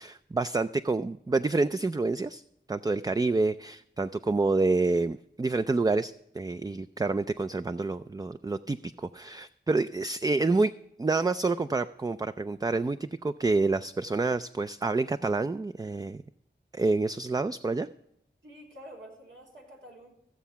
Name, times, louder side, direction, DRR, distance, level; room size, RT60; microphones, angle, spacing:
voice 1, 0.0-2.4 2.7-10.7 11.0-16.2 16.7-17.9, right 3 dB, 20° right, 11 dB, 0.3 m, -28 dB
voice 2, 18.4-20.1, equal, 85° right, -3 dB, 3.7 m, -48 dB
15.0 x 7.2 x 5.7 m, 0.76 s
wide cardioid pair, 50°, 19 cm